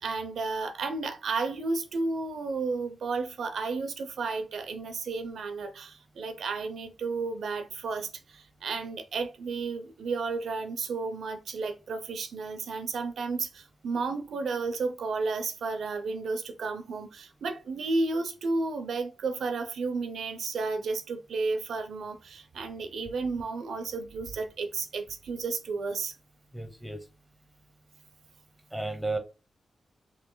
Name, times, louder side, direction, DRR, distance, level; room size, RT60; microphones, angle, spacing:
voice 1, 0.0-26.1, right 3 dB, 75° right, 0.5 m, -32 dB
voice 2, 26.5-27.1 28.7-29.2, right 2 dB, ahead, 0.9 m, -33 dB
3.1 x 2.7 x 3.7 m
cardioid pair, 85°, 0 cm